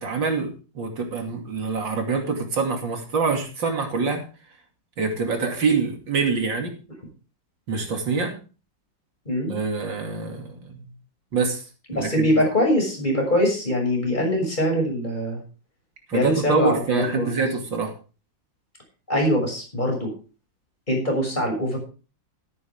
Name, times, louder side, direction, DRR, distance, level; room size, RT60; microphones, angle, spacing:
voice 1, 0.0-4.2 5.0-6.7 7.7-8.4 9.5-10.8 11.3-11.6 11.9-12.3 16.1-17.9, right 4 dB, 80° right, 3 dB, 3.3 m, -25 dB
voice 2, 11.9-15.4 16.1-17.4 19.1-20.1 20.9-21.8, left 1 dB, 25° left, 0 dB, 6.6 m, -23 dB
13.5 x 13.0 x 3.6 m, 0.34 s
omnidirectional pair, 2.0 m